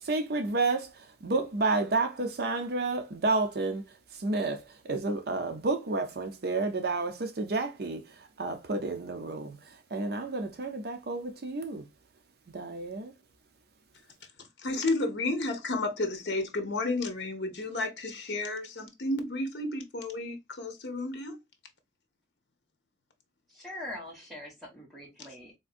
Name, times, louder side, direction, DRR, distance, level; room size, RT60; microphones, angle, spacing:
voice 1, 0.0-3.8 4.1-11.8 12.5-13.1, right 3 dB, 55° right, 0.6 m, -31 dB
voice 2, 14.6-21.4, left 2 dB, 65° left, 0.7 m, -32 dB
voice 3, 23.5-25.6, left 1 dB, ahead, 1.4 m, -43 dB
3.6 x 2.6 x 2.4 m
head